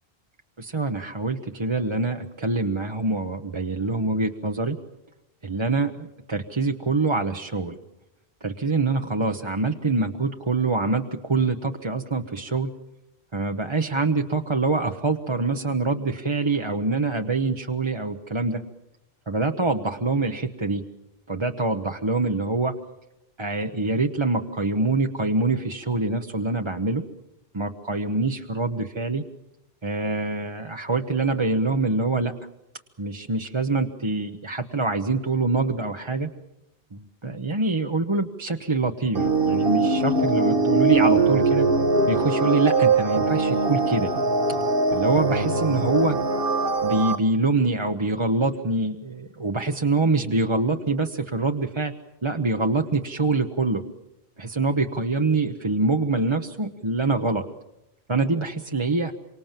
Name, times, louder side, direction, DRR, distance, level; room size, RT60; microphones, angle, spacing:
voice 1, 0.6-4.8 5.4-7.8 8.4-12.7 13.3-18.6 19.3-20.8 21.3-22.7 23.4-27.0 27.5-29.2 29.8-32.3 33.0-36.3 36.9-41.7 42.1-44.1 44.9-46.2 46.8-51.9 52.2-53.8 54.4-57.5 58.1-59.1, right 3 dB, 30° right, 5 dB, 1.0 m, -25 dB
sound 1, 39.1-47.2, right 3 dB, 60° right, 1.7 m, -21 dB
27.5 x 25.0 x 7.4 m, 0.90 s
omnidirectional pair, 1.1 m